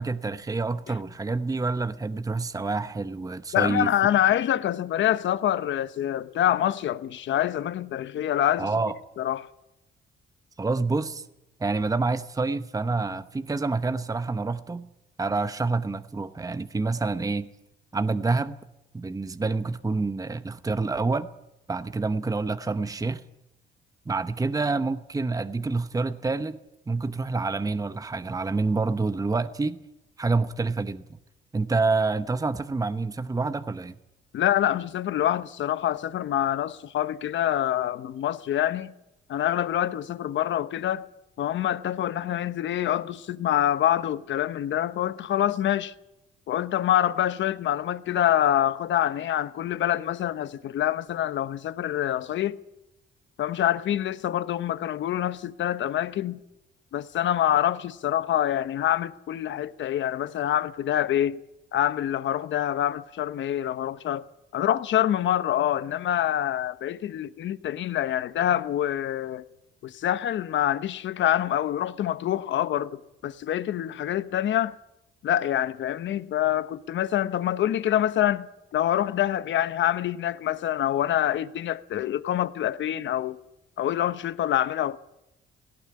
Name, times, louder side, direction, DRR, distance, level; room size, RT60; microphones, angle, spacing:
voice 1, 0.0-3.9 8.6-8.9 10.6-11.2 11.6-14.9 15.2-17.5 17.9-18.6 18.9-21.3 21.7-23.2 24.1-26.6 26.9-29.8 30.2-31.0 31.5-34.0, right 3 dB, 15° right, 0.9 m, -27 dB
voice 2, 3.5-8.7 9.2-9.5 34.3-38.9 39.3-41.1 41.4-45.9 46.5-52.6 53.4-56.4 56.9-61.4 61.7-64.2 64.5-69.5 69.8-74.8 75.2-83.4 83.8-85.0, left 11 dB, 70° left, 1.0 m, -26 dB
18.0 x 15.5 x 9.7 m
cardioid pair, 90°, 20 cm